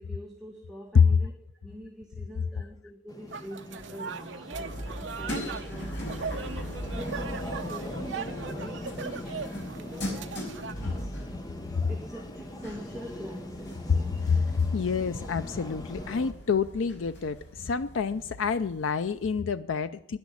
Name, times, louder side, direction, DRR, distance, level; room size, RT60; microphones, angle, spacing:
voice 1, 0.0-1.3 1.6-6.0 6.8-9.3 9.7-10.4 10.8-11.1 11.9-14.2, equal, ahead, -2 dB, 1.7 m, -44 dB
sound 1, 3.1-16.3, left 1 dB, 20° left, 1.2 m, -41 dB
sound 2, 3.3-10.7, right 5 dB, 65° right, 0.8 m, -39 dB
sound 3, 4.5-19.3, equal, 60° left, 5.1 m, -40 dB
voice 2, 14.3-20.2, left 5 dB, 75° left, 11 dB, 0.5 m, -26 dB
10.5 x 10.5 x 8.4 m, 0.73 s
head